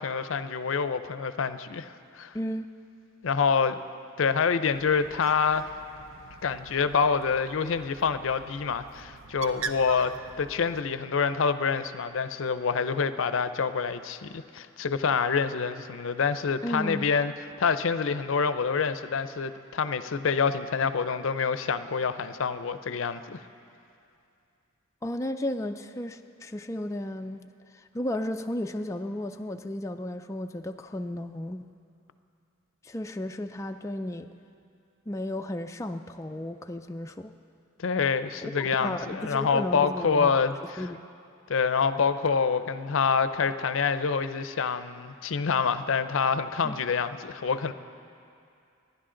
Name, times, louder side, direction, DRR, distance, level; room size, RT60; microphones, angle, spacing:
voice 1, 0.0-2.3 3.2-3.8 4.2-5.7 6.4-17.3 17.6-23.4 37.8-40.9 41.5-47.7, left 5 dB, 70° left, 12 dB, 0.5 m, -27 dB
voice 2, 2.3-2.7 16.6-17.1 25.0-27.4 27.7-31.7 32.8-34.3 35.1-37.3 38.4-40.4 40.8-41.0 46.6-46.8, left 1 dB, 15° left, 5 dB, 0.3 m, -34 dB
Bird, 4.7-10.8, right 4 dB, 75° right, 0.7 m, -42 dB
27.0 x 10.5 x 3.8 m, 2.5 s
head